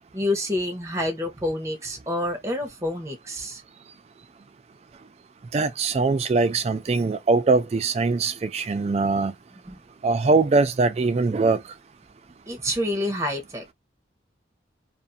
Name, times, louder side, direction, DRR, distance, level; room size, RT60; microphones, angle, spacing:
voice 1, 0.1-3.6 9.7-9.8 12.5-13.7, left 1 dB, 15° right, 0.7 m, -28 dB
voice 2, 5.5-9.3 10.0-11.6, right 3 dB, 35° right, 0.3 m, -22 dB
2.5 x 2.3 x 2.5 m
head